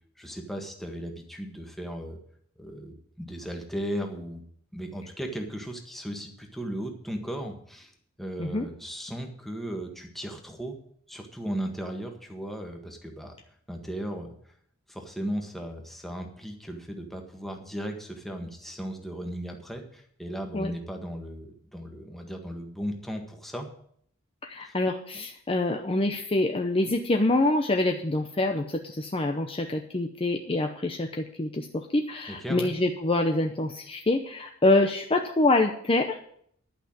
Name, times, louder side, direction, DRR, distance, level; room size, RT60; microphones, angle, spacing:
voice 1, 0.2-2.2 2.6-4.4 4.7-7.9 8.2-10.8 11.1-13.4 13.7-14.3 14.9-23.7 24.6-24.7 32.3-32.7, equal, ahead, 2 dB, 1.6 m, -36 dB
voice 2, 24.4-36.2, left 2 dB, 25° left, 4 dB, 0.7 m, -26 dB
11.5 x 5.8 x 8.8 m, 0.64 s
head